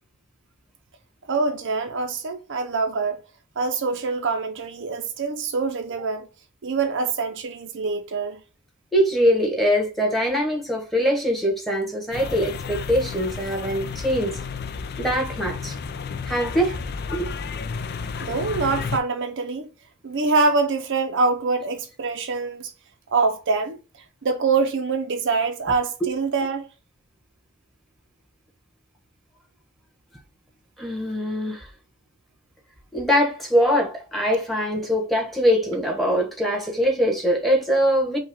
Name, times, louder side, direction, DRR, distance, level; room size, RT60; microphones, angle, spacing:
voice 1, 1.3-3.2 3.6-6.3 6.6-8.4 18.2-19.7 20.0-22.7 23.1-23.8 24.2-26.7, right 4 dB, 55° right, 0.6 m, -24 dB
voice 2, 8.9-14.4 15.0-15.7 16.2-16.8 17.1-17.3 26.0-26.1 30.8-31.7 32.9-38.2, equal, ahead, 1.2 m, -22 dB
sound 1, 12.1-19.0, left 5 dB, 45° left, 0.4 m, -32 dB
5.4 x 2.4 x 3.5 m
head